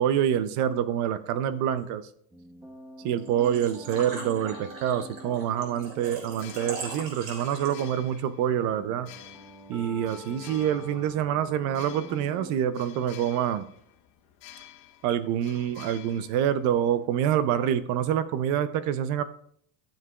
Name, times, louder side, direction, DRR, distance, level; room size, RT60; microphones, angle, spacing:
voice 1, 0.0-2.1 3.0-9.1 9.7-13.7 15.0-19.2, right 10 dB, 45° right, 13 dB, 0.6 m, -26 dB
sound 1, 2.3-12.5, right 1 dB, 5° right, 0.7 m, -46 dB
Engine / Trickle dribble / Fill (with liquid), 3.2-8.0, right 3 dB, 60° right, 4.4 m, -40 dB
sound 2, 6.3-17.1, left 12 dB, 50° left, 1.0 m, -51 dB
14.0 x 7.3 x 2.4 m, 0.64 s
cardioid pair, 160°, 42 cm